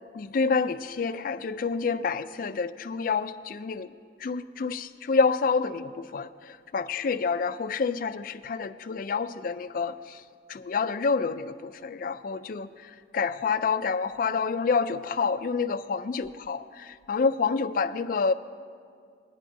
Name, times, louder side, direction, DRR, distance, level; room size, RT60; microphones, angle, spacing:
voice 1, 0.1-3.9 4.2-10.2 10.5-12.7 13.1-18.3, left 5 dB, 50° left, 11 dB, 0.3 m, -28 dB
20.0 x 10.0 x 2.7 m, 2.2 s
head